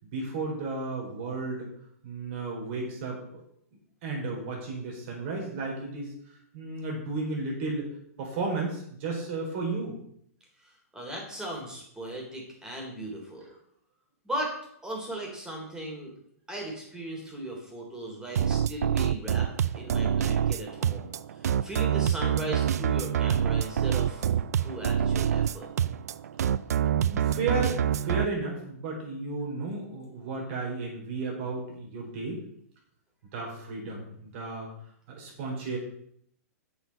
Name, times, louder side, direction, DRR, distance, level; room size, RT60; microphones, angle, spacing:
voice 1, 0.0-1.7 2.0-3.4 4.0-6.1 6.5-7.9 8.2-9.9 27.0-32.4 33.3-34.7 35.1-35.8, right 3 dB, 50° right, 0 dB, 4.2 m, -33 dB
voice 2, 10.6-13.5 14.2-14.5 14.8-16.1 16.5-19.5 19.7-21.1 21.6-25.7, right 1 dB, 10° right, 0 dB, 3.1 m, -37 dB
sound 1, 18.4-28.2, right 9 dB, 85° right, 0.4 m, -26 dB
7.9 x 7.1 x 5.5 m, 0.69 s
hypercardioid pair, 140°, 8 cm